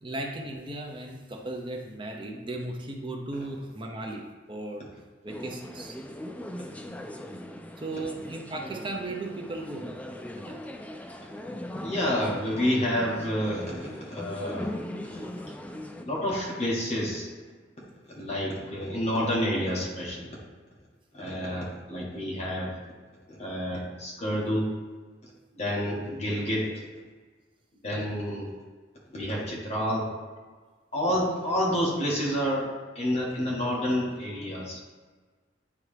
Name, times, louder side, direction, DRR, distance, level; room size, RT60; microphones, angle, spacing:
voice 1, 0.0-4.9 5.2-6.0 7.8-9.9 10.4-10.6, right 2 dB, 30° right, 1 dB, 0.7 m, -36 dB
sound 1, 5.3-16.1, left 1 dB, 10° left, 0.3 m, -39 dB
voice 2, 11.8-14.7 15.1-15.2 16.0-17.3 18.2-20.3 21.1-22.7 23.3-24.7 25.5-26.7 27.8-28.5 29.1-30.1 30.9-32.7 32.9-34.8, equal, 35° left, -5 dB, 1.7 m, -29 dB
9.5 x 3.4 x 3.4 m, 1.4 s
head